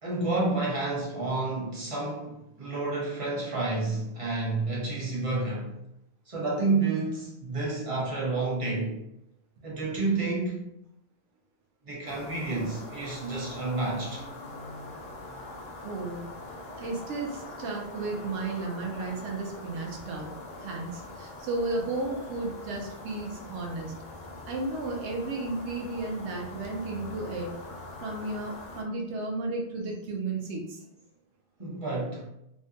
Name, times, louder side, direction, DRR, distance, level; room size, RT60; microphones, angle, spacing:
voice 1, 0.0-5.7 6.3-9.0 9.6-10.6 11.8-14.2 31.6-32.2, right 3 dB, 35° right, -4 dB, 0.7 m, -30 dB
sound 1, 12.1-28.8, left 2 dB, 60° left, 0.5 m, -43 dB
voice 2, 15.8-16.2 16.8-20.3 20.6-23.9 24.5-27.5 28.0-30.8, right 2 dB, 75° right, 0 dB, 0.9 m, -33 dB
2.6 x 2.1 x 2.7 m, 0.84 s
omnidirectional pair, 1.2 m